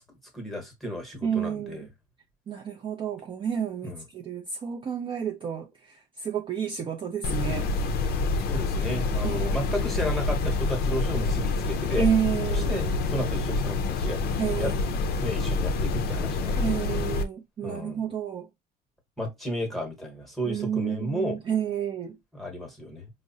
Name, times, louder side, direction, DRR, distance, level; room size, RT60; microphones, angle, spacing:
voice 1, 0.3-1.9 3.8-4.0 8.5-12.1 12.5-14.2 14.6-14.7 15.2-16.8 17.6-18.1 19.2-21.4 22.3-23.1, equal, ahead, 1.0 m, -33 dB
voice 2, 1.2-1.9 2.5-7.7 9.2-9.7 12.0-13.0 14.4-15.0 16.6-18.5 20.5-22.2, right 8 dB, 30° right, 0.4 m, -30 dB
sound 1, 7.2-17.2, left 3 dB, 60° left, 0.5 m, -27 dB
4.7 x 2.0 x 2.6 m
cardioid pair, 160°, 18 cm